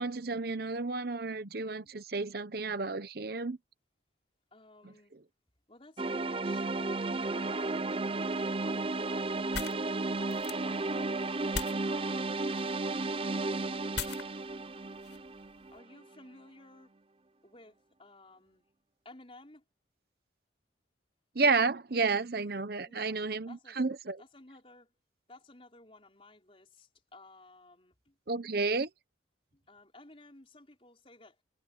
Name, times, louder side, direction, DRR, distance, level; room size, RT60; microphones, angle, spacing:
voice 1, 0.0-3.6 21.3-24.2 28.3-28.9, right 4 dB, 55° right, 0.9 m, -31 dB
voice 2, 4.5-5.1 5.7-7.9 8.4-9.8 10.2-11.4 11.9-14.0 15.7-16.9 17.4-18.7 19.0-19.6 22.8-23.2 23.4-23.8 24.2-24.9 25.3-28.2 29.5-31.4, left 2 dB, 30° left, 4.7 m, -55 dB
sound 1, 6.0-16.0, right 3 dB, 30° right, 0.5 m, -33 dB
sound 2, 8.3-15.8, left 5 dB, 70° left, 6.5 m, -44 dB
head